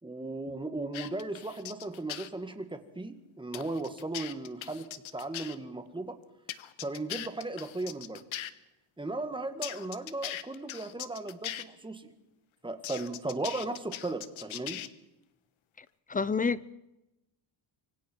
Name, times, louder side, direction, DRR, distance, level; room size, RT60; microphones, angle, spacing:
voice 1, 0.0-6.2 6.8-8.2 9.0-12.1 12.6-14.8, right 2 dB, 10° right, 8 dB, 1.9 m, -36 dB
sound 1, 0.9-2.3 3.5-5.5 6.5-8.5 9.6-11.6 12.8-14.9, left 12 dB, 80° left, 1.3 m, -40 dB
voice 2, 16.1-16.7, left 5 dB, 20° left, 18 dB, 0.6 m, -28 dB
26.0 x 23.5 x 4.6 m, 0.93 s
cardioid pair, 150°, 47 cm